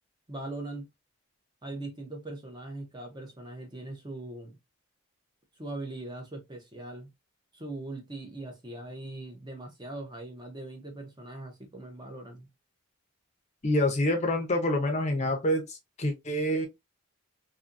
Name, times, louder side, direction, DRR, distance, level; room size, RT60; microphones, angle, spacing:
voice 1, 0.3-0.9 1.6-4.6 5.6-7.1 7.5-12.5, right 2 dB, 20° right, 0.6 m, -40 dB
voice 2, 13.6-16.7, left 1 dB, 30° left, 0.6 m, -27 dB
2.6 x 2.6 x 2.4 m
head